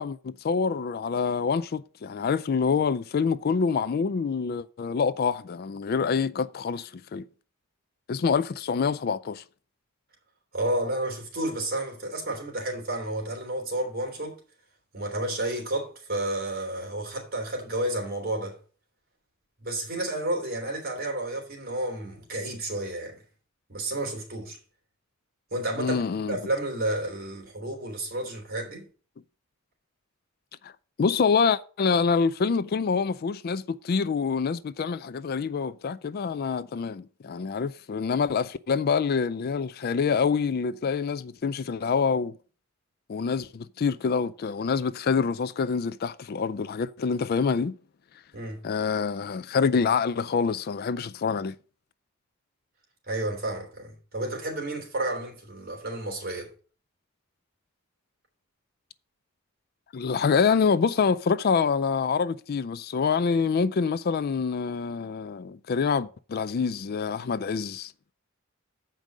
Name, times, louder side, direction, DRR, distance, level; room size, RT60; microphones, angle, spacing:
voice 1, 0.0-7.2 8.1-9.4 25.8-26.4 30.6-30.7 31.0-42.3 43.1-47.8 48.6-51.5 59.9-67.9, left 5 dB, 50° left, 0.4 m, -26 dB
voice 2, 10.5-14.4 14.9-18.6 19.6-23.2 23.7-24.6 25.5-26.0 26.3-28.8 48.3-48.6 53.1-56.5, right 1 dB, 45° right, 3.0 m, -31 dB
7.7 x 5.3 x 6.1 m
head